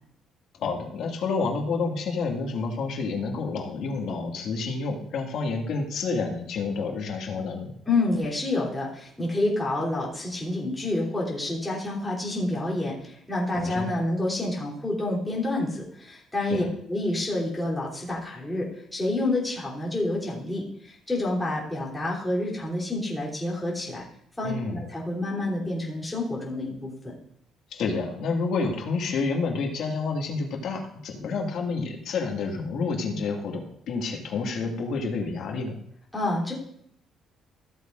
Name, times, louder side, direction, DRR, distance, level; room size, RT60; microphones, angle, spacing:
voice 1, 0.6-7.7 13.5-13.9 16.5-16.7 24.4-24.8 27.7-35.8, left 4 dB, 65° left, 1 dB, 2.1 m, -29 dB
voice 2, 7.9-24.0 24.4-27.1 36.1-36.5, left 2 dB, 10° left, -5 dB, 3.4 m, -28 dB
15.0 x 8.0 x 2.6 m, 0.67 s
cardioid pair, 145°, 0 cm